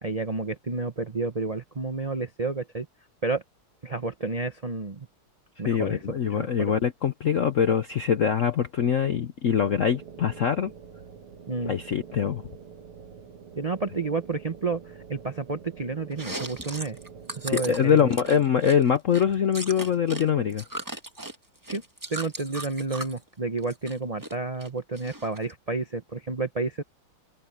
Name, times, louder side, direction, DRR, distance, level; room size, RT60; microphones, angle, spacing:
voice 1, 0.0-2.9 3.2-3.4 3.8-5.1 5.6-6.7 11.5-11.8 13.5-14.8 15.1-17.0 17.3-18.1 21.7-21.8 22.1-26.8, right 3 dB, 60° right, 0.4 m, -30 dB
voice 2, 5.7-10.7 11.7-12.4 17.5-20.6, left 8 dB, 70° left, 0.7 m, -23 dB
sound 1, 9.6-18.4, right 7 dB, 90° right, 2.9 m, -46 dB
Chewing mastication, 16.1-20.2 20.5-23.2 23.6-24.3 24.6-25.5, right 1 dB, 10° right, 1.3 m, -37 dB
open air
omnidirectional pair, 2.3 m